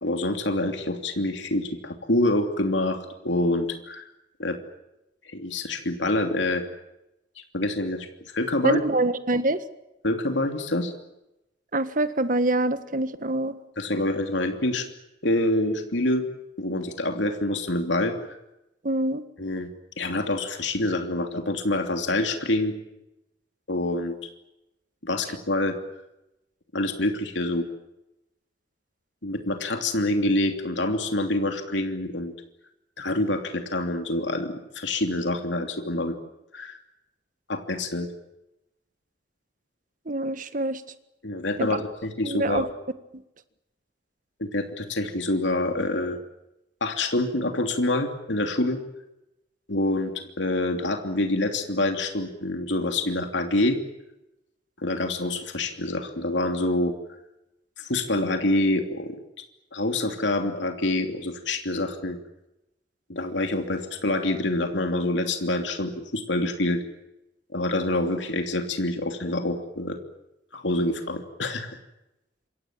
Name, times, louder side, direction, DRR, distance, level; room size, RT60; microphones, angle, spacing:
voice 1, 0.0-4.1 4.4-4.6 5.2-6.6 7.5-8.1 8.3-8.8 10.0-10.9 13.8-14.9 15.2-16.3 16.6-18.4 19.4-19.7 20.0-22.7 23.7-24.1 25.0-25.7 26.7-27.7 29.2-32.3 33.0-36.2 36.5-36.8 37.5-38.1 41.2-42.7 44.4-46.2 46.8-48.8 49.7-53.8 54.8-56.9 57.8-59.2 59.7-62.2 63.1-66.8 67.5-70.0 70.5-71.8, left 1 dB, 85° left, 5 dB, 3.0 m, -26 dB
voice 2, 8.6-9.6 11.7-13.6 18.8-19.2 40.1-40.8 41.6-41.7 42.2-42.7, right 2 dB, 45° right, 11 dB, 1.6 m, -25 dB
27.5 x 24.0 x 7.5 m, 0.92 s
head